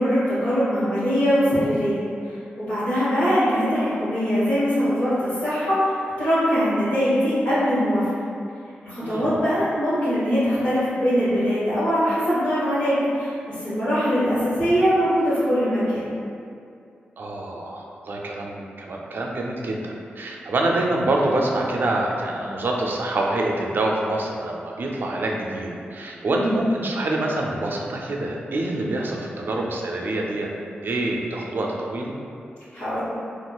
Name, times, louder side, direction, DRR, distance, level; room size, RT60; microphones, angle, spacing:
voice 1, 0.0-2.3 2.6-8.0 8.8-16.1 26.3-26.5 32.7-33.0, equal, 65° left, -15 dB, 1.1 m, -22 dB
voice 2, 9.0-9.4 17.2-30.5 30.8-32.1, right 2 dB, 60° right, -1 dB, 0.4 m, -26 dB
3.8 x 2.5 x 2.3 m, 2.5 s
cardioid pair, 75°, 4 cm